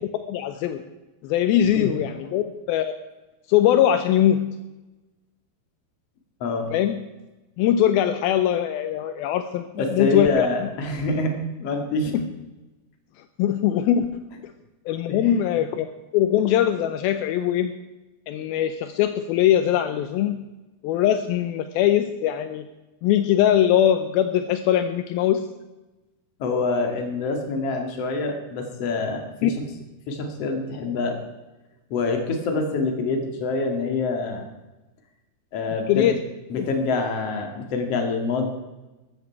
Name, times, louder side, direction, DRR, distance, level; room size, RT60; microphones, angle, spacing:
voice 1, 0.3-0.8 1.2-2.9 3.5-4.6 6.7-7.0 7.6-10.7 12.1-12.3 13.4-14.5 14.9-15.9 16.1-17.7 18.3-20.4 20.8-22.7 23.0-25.5 29.4-29.5 35.9-36.2 36.6-36.7, left 11 dB, 80° left, 9 dB, 2.4 m, -21 dB
voice 2, 9.7-11.3 11.6-12.2 15.1-15.5 26.4-29.2 30.1-31.2 31.9-34.4 35.5-36.2 36.5-38.5, left 3 dB, 45° left, 4 dB, 2.7 m, -26 dB
14.0 x 13.5 x 4.6 m, 1.1 s
omnidirectional pair, 4.4 m